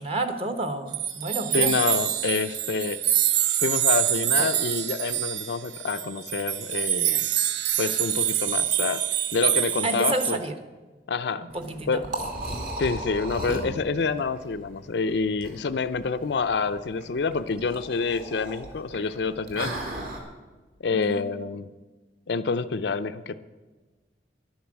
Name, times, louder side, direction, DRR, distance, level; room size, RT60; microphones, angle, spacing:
voice 1, 0.0-1.8 4.4-4.5 9.8-10.5 11.5-12.0 20.9-21.2, right 2 dB, 35° right, 8 dB, 1.2 m, -29 dB
sound 1, 0.9-10.4, right 12 dB, 70° right, 0.6 m, -26 dB
voice 2, 1.5-3.0 3.6-7.3 7.8-9.0 9.3-10.4 11.1-11.5 11.9-12.0 12.8-19.7 20.8-21.7 22.3-23.4, left 4 dB, 70° left, 11 dB, 0.5 m, -27 dB
Liquid, 11.5-20.2, right 1 dB, 55° right, 2.9 m, -36 dB
11.5 x 10.0 x 7.4 m, 1.3 s
head